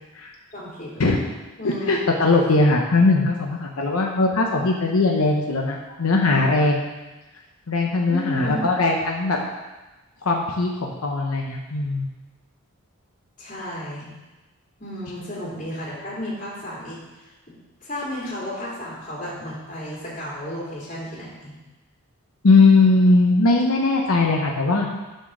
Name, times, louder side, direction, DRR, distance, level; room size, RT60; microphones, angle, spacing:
voice 1, 0.5-1.2 1.6-1.9 5.9-6.0 8.1-8.6 13.4-14.2 14.8-21.5, left 1 dB, 35° left, -7 dB, 2.5 m, -33 dB
voice 2, 1.6-6.9 7.7-9.4 10.2-12.1 22.4-24.9, left 3 dB, 90° left, 0 dB, 0.9 m, -19 dB
9.2 x 4.5 x 6.3 m, 1.1 s
head